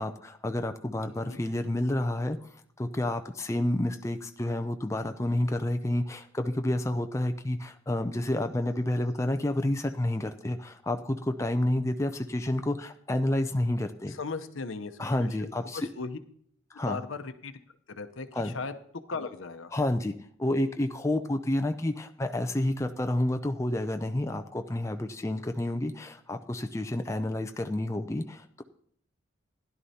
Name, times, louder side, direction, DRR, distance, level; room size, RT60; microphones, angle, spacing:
voice 1, 0.0-2.4 2.8-14.1 15.0-15.9 16.7-17.0 18.3-18.5 19.7-20.1 20.4-28.6, left 1 dB, 15° left, 7 dB, 0.4 m, -29 dB
voice 2, 14.1-16.2 16.9-17.5 17.9-18.7 19.1-19.7, left 4 dB, 80° left, 9 dB, 0.8 m, -37 dB
16.0 x 11.0 x 2.8 m, 0.62 s
head